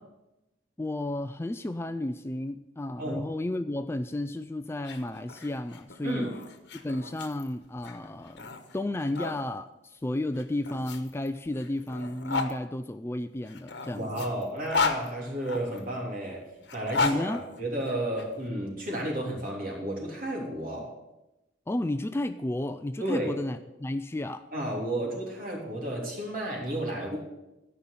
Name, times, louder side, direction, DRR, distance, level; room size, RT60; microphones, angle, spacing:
voice 1, 0.8-6.3 6.7-14.3 17.0-17.5 21.7-24.5, left 1 dB, 15° left, 10 dB, 0.3 m, -32 dB
sound 1, 4.7-9.4 10.3-12.5 13.4-15.8 16.6-18.2, left 4 dB, 65° left, 1.2 m, -34 dB
voice 2, 6.0-6.3 13.9-16.4 16.7-20.9 23.0-23.3 24.5-27.2, right 1 dB, 50° right, -1 dB, 3.4 m, -32 dB
13.5 x 5.6 x 8.4 m, 0.96 s
head